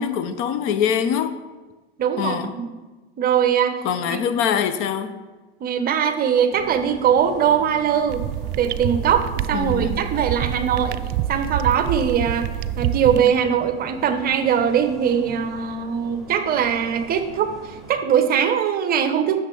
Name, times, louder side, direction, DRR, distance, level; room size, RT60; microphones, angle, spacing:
voice 1, 0.0-1.4 2.2-2.5 3.8-5.2 9.5-10.0, left 8 dB, 40° left, 0.6 m, -23 dB
voice 2, 2.0-2.6 3.2-3.8 4.0-4.2 5.6-8.2 8.6-11.0 11.3-12.5 12.8-19.4, right 8 dB, 30° right, 0.9 m, -21 dB
sound 1, 6.5-17.9, right 2 dB, ahead, 2.4 m, -41 dB
sound 2, 8.1-13.3, right 12 dB, 45° right, 0.4 m, -27 dB
11.5 x 6.7 x 3.8 m
hypercardioid pair, 115°, 32 cm